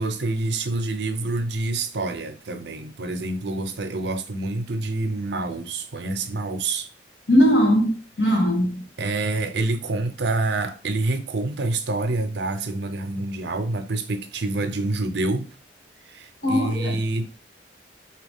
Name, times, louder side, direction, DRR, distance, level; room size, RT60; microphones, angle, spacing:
voice 1, 0.0-6.9 9.0-15.5 16.1-17.3, right 2 dB, 70° right, 0.6 m, -27 dB
voice 2, 7.3-8.8 16.4-17.0, equal, 85° left, 1.3 m, -19 dB
4.0 x 2.9 x 3.5 m
head